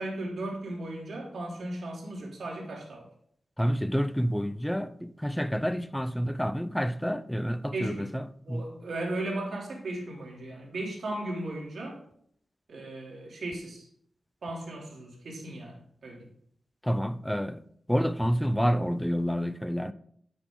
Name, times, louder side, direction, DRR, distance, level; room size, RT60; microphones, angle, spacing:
voice 1, 0.0-3.1 7.7-8.1 8.5-12.0 12.7-13.9 14.4-16.3, right 1 dB, 75° right, 3.4 m, -36 dB
voice 2, 3.6-8.7 16.8-19.9, equal, 5° left, 0.6 m, -29 dB
9.8 x 8.0 x 3.9 m
cardioid pair, 65°, 0 cm